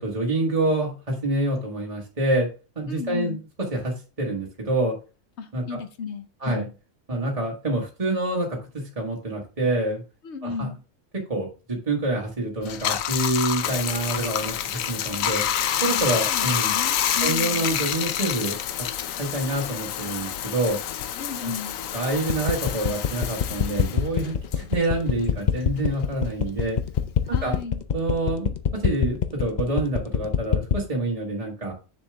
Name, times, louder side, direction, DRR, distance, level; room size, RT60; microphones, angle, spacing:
voice 1, 0.0-2.5 2.7-3.4 3.7-4.9 5.5-5.8 6.4-6.6 7.1-10.0 10.4-10.7 11.3-15.4 15.8-16.7 17.2-18.6 19.2-20.8 21.4-21.5 21.9-26.8 27.3-27.5 27.9-31.7, right 2 dB, 25° right, -2 dB, 1.6 m, -27 dB
voice 2, 2.9-3.4 5.4-6.7 10.2-10.8 15.9-17.7 21.2-21.8 27.3-27.8, left 5 dB, 60° left, 9 dB, 1.2 m, -34 dB
Bathtub (filling or washing), 12.6-25.5 25.8-27.6, left 10 dB, 85° left, 1.1 m, -28 dB
sound 1, 22.3-30.8, left 8 dB, 45° left, 0.6 m, -23 dB
6.9 x 6.8 x 3.5 m, 0.32 s
omnidirectional pair, 1.4 m